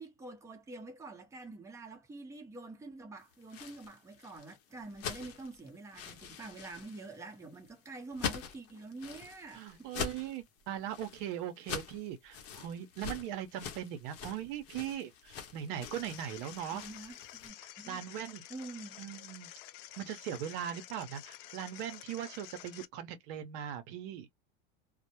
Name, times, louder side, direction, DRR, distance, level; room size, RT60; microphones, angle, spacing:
voice 1, 0.0-9.9 16.7-18.0 18.5-19.0, right 3 dB, 10° right, 0.7 m, -47 dB
sound 1, 3.3-17.5, left 7 dB, 50° left, 0.8 m, -44 dB
voice 2, 9.6-16.8 17.6-18.4 19.0-19.5 20.0-24.3, right 10 dB, 65° right, 0.7 m, -40 dB
sound 2, 15.9-22.9, left 14 dB, 70° left, 0.4 m, -50 dB
2.1 x 2.0 x 2.8 m
supercardioid pair, 110°, 32 cm